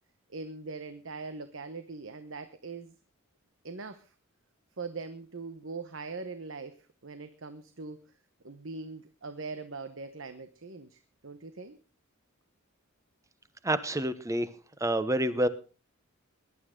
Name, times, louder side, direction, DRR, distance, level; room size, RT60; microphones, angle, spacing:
voice 1, 0.3-3.0 3.6-4.1 4.8-8.0 8.4-11.8, right 4 dB, 65° right, 9 dB, 1.1 m, -41 dB
voice 2, 13.6-14.5 14.8-15.5, right 1 dB, 15° right, 13 dB, 1.0 m, -27 dB
21.0 x 11.5 x 3.8 m, 0.34 s
head